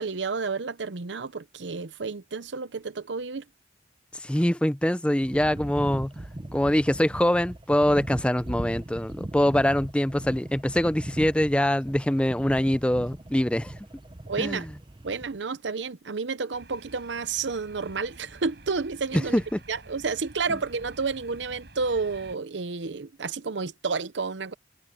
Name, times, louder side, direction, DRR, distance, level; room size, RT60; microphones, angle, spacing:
voice 1, 0.0-3.4 14.3-14.7 15.0-19.4 19.7-24.5, right 4 dB, 85° right, 0.8 m, -30 dB
voice 2, 4.1-6.1 6.5-13.7 14.4-14.6 19.3-19.6, left 1 dB, 5° left, 0.5 m, -24 dB
sound 1, 5.2-15.4, right 1 dB, 25° right, 0.8 m, -39 dB
sound 2, 16.5-22.4, right 2 dB, 65° right, 5.8 m, -49 dB
head